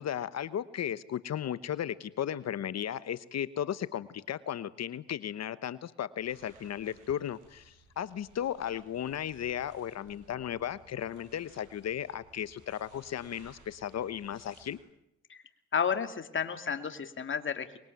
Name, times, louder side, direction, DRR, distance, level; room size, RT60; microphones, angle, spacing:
voice 1, 0.0-14.8, left 10 dB, 60° left, 15 dB, 1.1 m, -35 dB
sound 1, 6.2-14.8, right 3 dB, 80° right, 6.8 m, -60 dB
voice 2, 15.7-17.8, left 7 dB, 40° left, 8 dB, 2.5 m, -32 dB
24.0 x 22.5 x 9.3 m, 0.80 s
cardioid pair, 90°, 30 cm